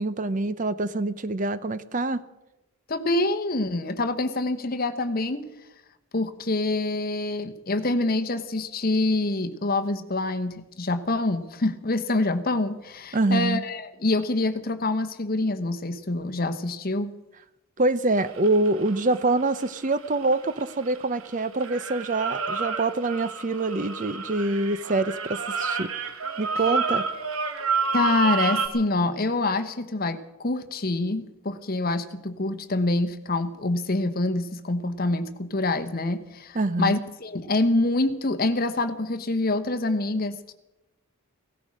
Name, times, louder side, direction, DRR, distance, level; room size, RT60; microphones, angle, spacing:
voice 1, 0.0-2.2 13.1-13.6 17.8-25.9 26.4-27.0 36.5-37.0, right 2 dB, 35° right, 14 dB, 0.6 m, -25 dB
voice 2, 2.9-5.4 6.1-17.1 27.9-40.5, left 2 dB, 40° left, 9 dB, 1.0 m, -26 dB
sound 1, 18.2-21.3 21.6-28.7, right 4 dB, 70° right, 1.5 m, -29 dB
17.0 x 13.5 x 6.3 m, 0.94 s
head